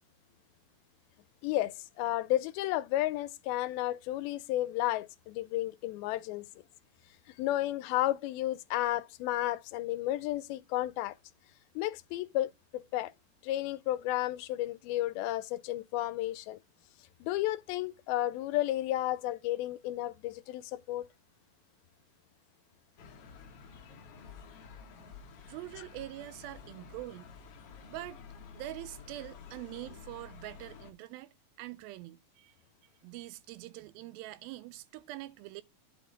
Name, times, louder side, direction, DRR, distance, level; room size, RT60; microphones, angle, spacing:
voice 1, 1.4-6.5 7.4-11.2 11.8-13.1 13.4-16.6 17.2-21.1, left 15 dB, 90° left, 2.4 m, -32 dB
sound 1, 23.0-30.9, left 6 dB, 65° left, 1.5 m, -51 dB
voice 2, 25.0-27.3 27.9-28.2 28.5-32.5 33.0-35.6, right 16 dB, 85° right, 2.3 m, -44 dB
9.5 x 3.8 x 5.0 m
omnidirectional pair, 4.2 m